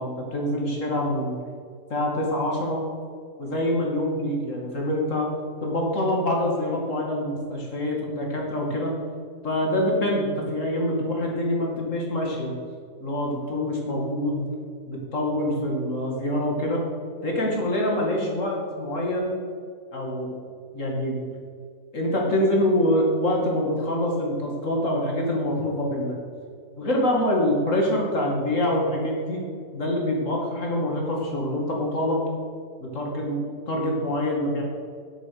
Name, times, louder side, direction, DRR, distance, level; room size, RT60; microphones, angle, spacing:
voice 1, 0.0-1.4 1.9-2.8 3.4-5.3 5.6-8.9 9.4-12.5 13.0-14.5 14.9-16.8 17.2-19.4 19.9-20.3 20.7-21.3 21.9-26.2 26.8-29.4 29.7-32.3 32.8-34.6, left 1 dB, 45° left, -1 dB, 2.6 m, -25 dB
10.5 x 8.2 x 6.5 m, 2.2 s
omnidirectional pair, 1.8 m